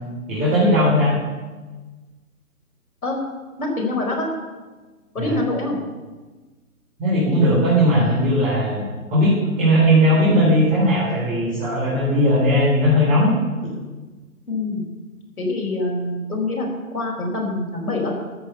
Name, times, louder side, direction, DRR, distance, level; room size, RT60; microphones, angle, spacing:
voice 1, 0.3-1.1 5.2-5.4 7.0-8.8 9.1-13.3 13.6-13.7, equal, 15° right, -9 dB, 4.1 m, -18 dB
voice 2, 3.6-4.3 5.1-5.8 14.5-14.8 15.4-18.1, left 2 dB, 75° left, 0 dB, 4.7 m, -25 dB
13.0 x 7.8 x 7.0 m, 1.3 s
figure-of-eight pair, 145°, 44 cm